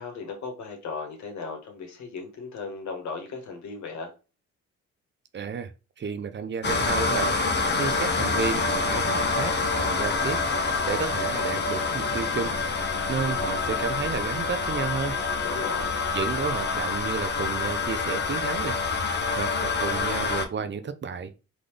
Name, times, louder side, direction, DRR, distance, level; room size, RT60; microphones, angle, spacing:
voice 1, 0.0-4.1 15.4-15.9, left 4 dB, 70° left, 1.6 m, -36 dB
voice 2, 5.3-5.7 6.0-7.4 7.7-10.4 10.9-12.5 13.1-15.2 16.1-18.8 19.4-21.3, right 6 dB, 40° right, 0.7 m, -31 dB
sound 1, 6.6-20.5, left 4 dB, 35° left, 0.9 m, -27 dB
3.9 x 3.8 x 3.3 m
cardioid pair, 90°, 30 cm